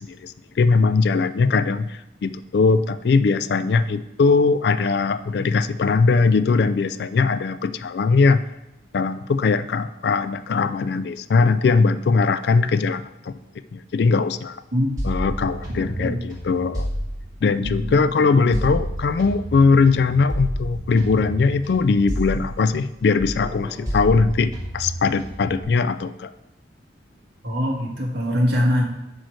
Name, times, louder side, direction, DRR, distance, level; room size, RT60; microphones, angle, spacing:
voice 1, 0.0-8.4 8.9-13.3 13.7-14.6 15.0-16.9 17.4-26.3, left 4 dB, 60° left, 13 dB, 0.3 m, -20 dB
sound 1, 15.0-18.1 18.5-22.9 23.2-25.6, equal, 20° right, 1.8 m, -30 dB
voice 2, 15.7-16.2 17.6-18.7 27.4-28.8, equal, 60° right, -2 dB, 1.6 m, -24 dB
8.1 x 3.2 x 6.2 m, 0.92 s
head